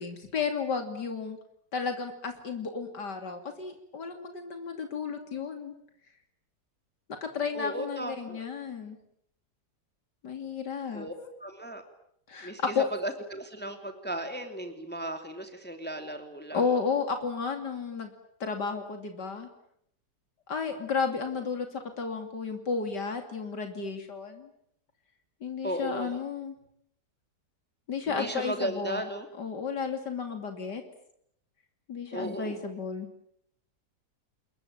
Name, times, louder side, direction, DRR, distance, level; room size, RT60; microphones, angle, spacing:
voice 1, 0.0-1.4 1.7-5.7 7.1-9.0 10.2-11.1 12.3-12.9 16.5-18.1 18.4-19.5 20.5-24.5 25.4-26.5 27.9-29.0 29.4-30.8 31.9-33.1, left 5 dB, 85° left, 5 dB, 3.3 m, -32 dB
voice 2, 7.5-8.4 10.9-11.1 11.4-11.8 12.4-12.7 13.0-16.6 25.6-26.1 28.1-29.3 32.1-32.6, right 1 dB, 5° left, 6 dB, 3.0 m, -35 dB
30.0 x 21.5 x 8.8 m, 0.71 s
omnidirectional pair, 1.8 m